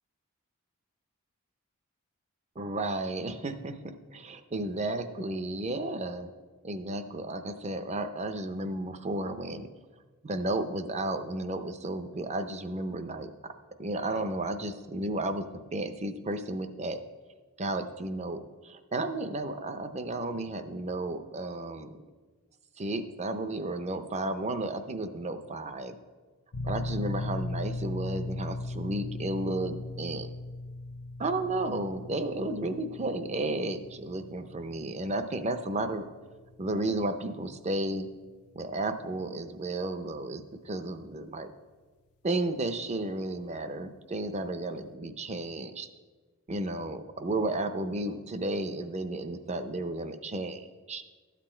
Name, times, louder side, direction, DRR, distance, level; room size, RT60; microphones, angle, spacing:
voice 1, 2.6-6.3 6.6-9.7 10.2-13.5 13.8-15.5 15.7-17.0 17.6-22.0 22.8-26.0 26.6-30.3 31.2-36.1 36.6-38.1 38.5-41.5 42.2-45.9 46.5-51.0, right 2 dB, 30° right, 10 dB, 0.6 m, -33 dB
sound 1, 26.5-40.9, left 2 dB, 80° left, 0.8 m, -39 dB
12.5 x 8.4 x 4.4 m, 1.4 s
head